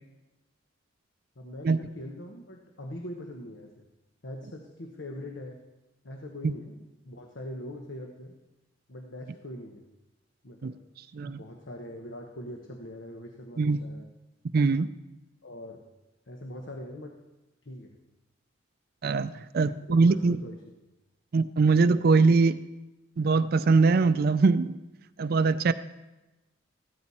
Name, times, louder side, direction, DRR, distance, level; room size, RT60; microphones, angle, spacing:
voice 1, 1.4-3.8 4.2-5.6 6.0-6.8 7.0-8.3 8.9-9.8 10.4-10.7 11.0-14.1 15.4-15.8 16.3-17.2 17.6-17.9 19.6-20.6, left 1 dB, 70° left, 2 dB, 1.2 m, -42 dB
voice 2, 14.5-14.9 19.0-20.4 21.3-22.6 23.2-24.8 25.2-25.7, right 4 dB, 50° right, 13 dB, 0.4 m, -22 dB
15.0 x 13.0 x 4.2 m, 1.1 s
head